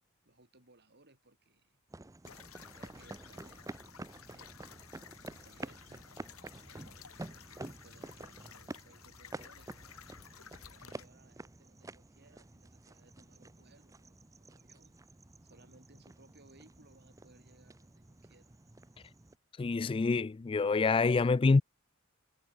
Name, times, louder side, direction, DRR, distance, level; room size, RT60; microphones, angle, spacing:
voice 1, 0.2-1.8 2.3-3.8 4.3-4.9 5.2-6.1 6.6-9.7 10.6-15.1 15.4-18.6, right 2 dB, 50° right, 6.3 m, -64 dB
sound 1, 1.9-19.3, right 2 dB, 15° right, 0.6 m, -50 dB
sound 2, 2.2-11.1, left 7 dB, 85° left, 2.0 m, -54 dB
voice 2, 19.6-21.6, left 4 dB, 25° left, 0.3 m, -26 dB
head